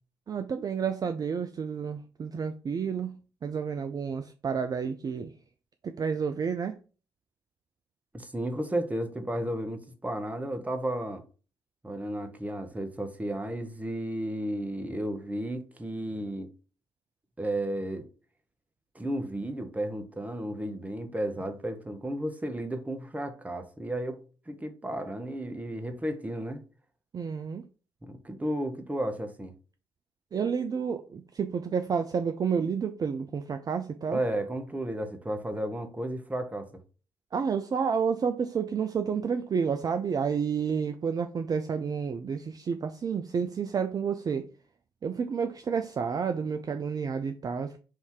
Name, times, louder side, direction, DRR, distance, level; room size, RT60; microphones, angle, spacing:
voice 1, 0.3-3.1 3.4-5.3 5.8-6.7 27.1-27.6 30.3-34.2 37.3-44.5 45.0-47.8, right 6 dB, 35° right, 0.4 m, -30 dB
voice 2, 8.1-11.2 11.8-16.5 17.4-18.0 18.9-24.2 24.5-26.6 28.0-29.5 34.1-36.7, right 1 dB, 15° right, 0.9 m, -33 dB
3.6 x 2.7 x 4.6 m
hypercardioid pair, 45°, 11 cm